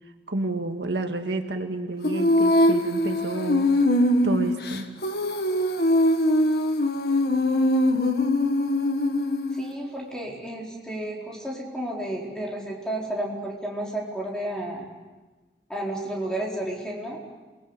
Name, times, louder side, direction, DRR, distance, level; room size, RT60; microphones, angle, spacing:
voice 1, 0.3-3.7 4.2-4.9, right 2 dB, 90° right, 5 dB, 2.0 m, -29 dB
Female singing, 2.0-9.7, left 1 dB, 65° left, 1.7 m, -22 dB
voice 2, 9.5-14.9 15.7-17.2, right 1 dB, 5° left, -3 dB, 4.4 m, -32 dB
28.5 x 20.5 x 8.1 m, 1.3 s
head